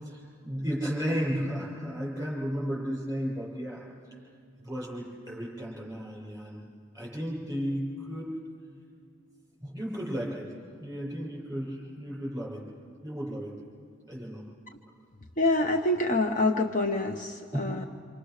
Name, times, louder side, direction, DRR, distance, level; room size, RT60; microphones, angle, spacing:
voice 1, 0.0-3.8 4.6-6.7 6.9-8.4 9.6-10.5 10.8-12.6 13.0-13.5 14.1-14.4 17.5-17.9, equal, 15° right, -5 dB, 7.3 m, -34 dB
voice 2, 15.4-17.9, left 2 dB, 40° left, 4 dB, 0.9 m, -26 dB
27.0 x 26.5 x 6.5 m, 2.3 s
head